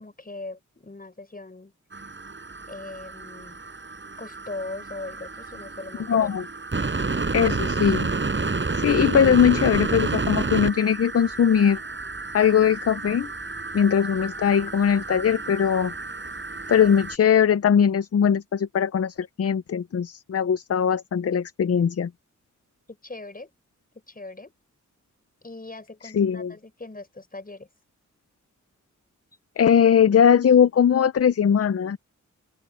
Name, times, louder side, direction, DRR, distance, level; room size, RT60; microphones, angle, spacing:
voice 1, 0.0-1.7 2.7-3.6 4.2-6.3 23.0-23.5 24.1-24.5 25.4-27.7, left 2 dB, 30° left, 6.3 m, -39 dB
sound 1, 1.9-17.2, right 3 dB, 40° right, 5.0 m, -30 dB
voice 2, 6.1-6.4 7.3-8.1 8.7-11.8 12.3-13.3 13.7-15.9 16.7-22.1 26.1-26.5 29.6-32.0, left 8 dB, 50° left, 0.6 m, -20 dB
open air
wide cardioid pair, 110°, 31 cm